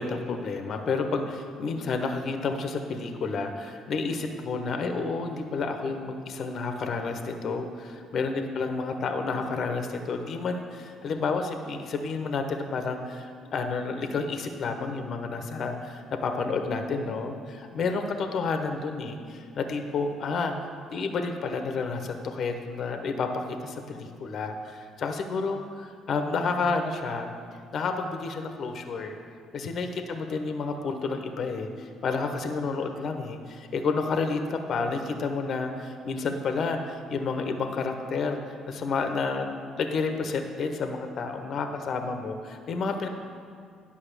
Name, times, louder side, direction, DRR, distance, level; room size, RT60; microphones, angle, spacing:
voice 1, 0.0-20.5 20.9-27.3 27.7-29.1 29.5-39.5 39.8-43.1, left 4 dB, 60° left, 6 dB, 0.9 m, -30 dB
10.0 x 5.3 x 6.7 m, 2.4 s
hypercardioid pair, 55°, 0 cm